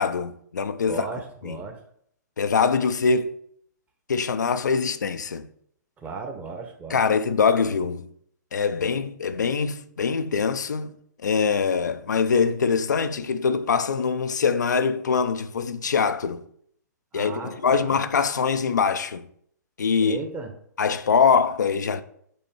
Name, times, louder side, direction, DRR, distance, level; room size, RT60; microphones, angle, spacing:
voice 1, 0.0-1.0 1.4-1.6 2.4-3.4 4.1-5.5 6.9-8.1 8.5-10.9 11.2-16.4 17.1-19.2 19.8-20.2 20.8-22.0, left 5 dB, 75° left, 0.4 m, -23 dB
voice 2, 0.9-1.8 6.0-7.0 17.1-18.0 20.0-20.5, right 4 dB, 15° right, 0.9 m, -35 dB
5.5 x 4.2 x 4.3 m
figure-of-eight pair, 120°, 10 cm